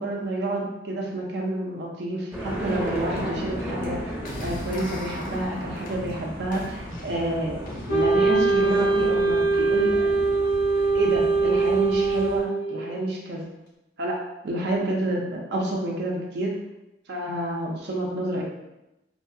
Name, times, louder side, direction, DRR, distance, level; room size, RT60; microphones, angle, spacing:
voice 1, 0.0-10.1 10.9-13.5 14.0-16.5 17.1-18.4, right 1 dB, 65° right, -1 dB, 0.5 m, -29 dB
sound 1, 2.3-12.4, equal, 15° right, 0.6 m, -35 dB
sound 2, 4.2-10.0, left 1 dB, 50° left, 0.5 m, -40 dB
Wind instrument woodwind instrument, 7.9-13.0, right 3 dB, 65° left, 1.0 m, -22 dB
2.7 x 2.3 x 2.6 m, 0.95 s
head